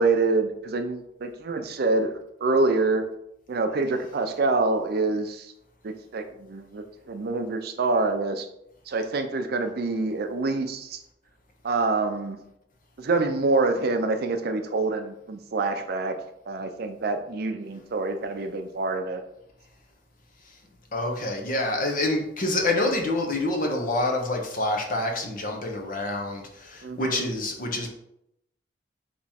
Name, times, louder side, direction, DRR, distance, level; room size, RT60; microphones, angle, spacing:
voice 1, 0.0-3.1 3.5-5.5 5.8-8.5 8.9-11.0 11.6-12.4 13.0-16.2 16.5-19.2 26.8-27.2, right 3 dB, 60° right, 7 dB, 0.5 m, -26 dB
voice 2, 20.9-27.9, left 2 dB, 50° left, 3 dB, 0.7 m, -27 dB
3.5 x 3.0 x 4.1 m, 0.79 s
head